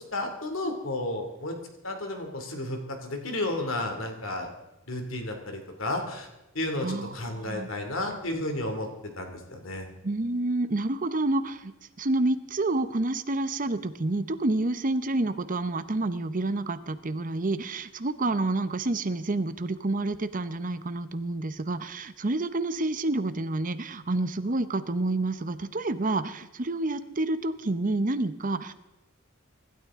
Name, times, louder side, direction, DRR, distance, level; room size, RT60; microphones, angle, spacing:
voice 1, 0.1-1.6 1.8-4.5 4.9-6.3 6.5-8.9 9.2-9.9, left 1 dB, 70° left, 4 dB, 2.6 m, -32 dB
voice 2, 6.8-7.1 7.4-7.7 10.0-11.7 12.0-28.7, right 2 dB, 40° right, 12 dB, 0.8 m, -28 dB
24.5 x 12.5 x 3.7 m, 0.99 s
head